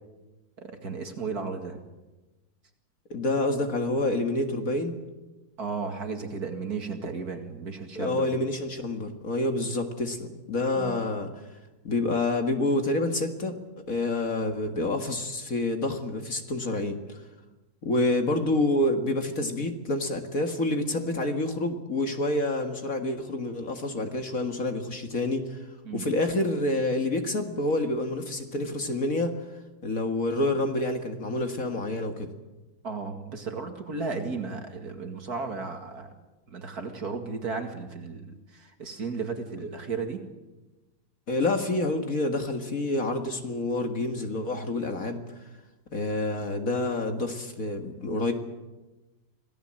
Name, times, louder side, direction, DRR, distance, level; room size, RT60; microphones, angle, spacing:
voice 1, 0.6-1.8 5.6-8.3 10.8-11.0 25.9-26.1 32.8-36.1 36.5-40.2, right 4 dB, 50° right, 5 dB, 2.6 m, -34 dB
voice 2, 3.1-5.0 8.0-11.3 11.8-13.6 13.9-17.2 17.8-25.6 25.9-29.3 29.8-32.3 41.3-45.4 45.9-48.3, left 2 dB, 45° left, 5 dB, 2.1 m, -28 dB
26.5 x 17.5 x 7.6 m, 1.1 s
omnidirectional pair, 2.2 m